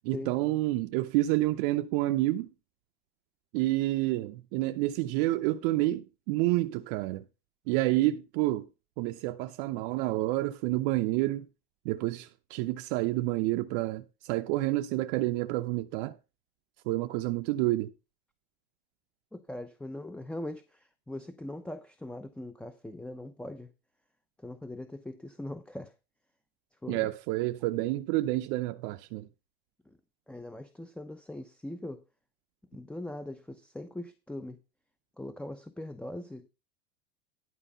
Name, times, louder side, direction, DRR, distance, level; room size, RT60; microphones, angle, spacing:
voice 1, 0.0-2.5 3.5-7.2 7.7-8.7 9.0-11.5 11.8-16.2 16.9-17.9 26.9-29.3, right 17 dB, 60° right, 0.8 m, -29 dB
voice 2, 19.3-23.7 24.4-25.9 26.8-27.1 29.9-30.0 30.3-32.0 32.7-34.6 35.2-36.5, left 1 dB, 5° left, 0.7 m, -41 dB
11.5 x 4.8 x 5.5 m
hypercardioid pair, 100°, 30 cm